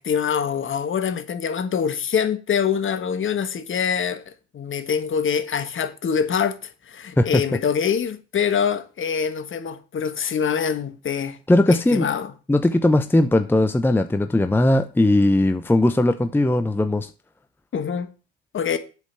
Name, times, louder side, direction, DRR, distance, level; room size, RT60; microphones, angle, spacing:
voice 1, 0.0-11.4 11.7-12.3 17.7-18.1 18.5-18.8, left 7 dB, 35° left, 1.5 m, -25 dB
voice 2, 11.5-12.1 12.5-17.1, left 1 dB, 5° left, 0.8 m, -18 dB
8.1 x 5.3 x 7.4 m
hypercardioid pair, 75°, 33 cm